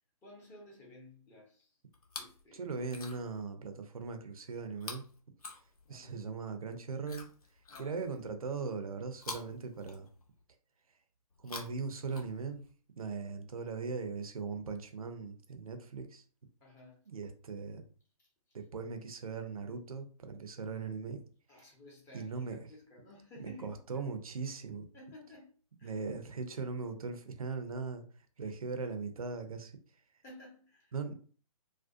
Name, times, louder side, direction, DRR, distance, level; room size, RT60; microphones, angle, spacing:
voice 1, 0.2-1.8 2.2-2.7 5.8-6.2 7.7-8.0 16.6-17.0 18.2-18.6 21.5-24.1 24.9-25.5 25.8-26.0 28.4-28.5 30.2-31.0, left 1 dB, 15° left, 0.7 m, -55 dB
Chewing mastication, 1.9-2.4 2.8-3.4 4.8-6.1 7.0-8.3 9.2-10.4 11.3-12.7 13.6-13.7, left 3 dB, 75° left, 0.7 m, -48 dB
voice 2, 2.5-5.0 5.9-7.3 7.8-10.1 11.4-12.6 13.0-16.2 17.1-17.8 18.5-21.2 22.1-22.6 23.4-24.9 25.8-28.0 28.4-29.7 30.9-31.1, right 4 dB, 70° right, 0.6 m, -39 dB
2.5 x 2.2 x 2.5 m
figure-of-eight pair, 135°, 19 cm